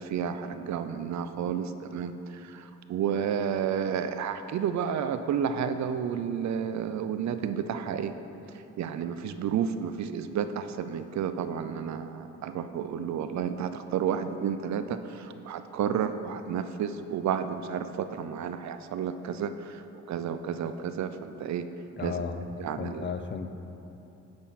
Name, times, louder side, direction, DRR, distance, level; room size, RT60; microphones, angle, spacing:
voice 1, 0.0-2.1 2.4-2.6 2.9-8.2 8.8-19.8 20.1-21.7 22.0-22.1 22.6-23.1, right 8 dB, 65° right, 10 dB, 0.5 m, -31 dB
voice 2, 22.0-22.4 22.8-23.6, left 5 dB, 40° left, 8 dB, 0.6 m, -34 dB
9.5 x 6.4 x 4.1 m, 3.0 s
cardioid pair, 75°, 30 cm